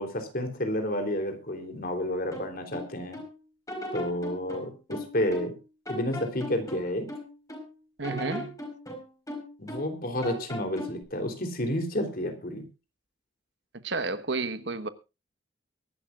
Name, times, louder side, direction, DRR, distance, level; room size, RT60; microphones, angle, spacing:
voice 1, 0.0-3.2 3.9-5.5 5.9-7.1 9.6-12.7, left 1 dB, 50° left, 3.4 m, -30 dB
sound 1, 2.3-3.3 3.7-5.6 5.9-7.7 8.0-10.0 10.2-11.0, equal, 15° left, 4.7 m, -38 dB
voice 2, 8.0-8.6 13.8-14.9, right 3 dB, 65° right, 1.3 m, -31 dB
23.0 x 12.0 x 2.5 m
head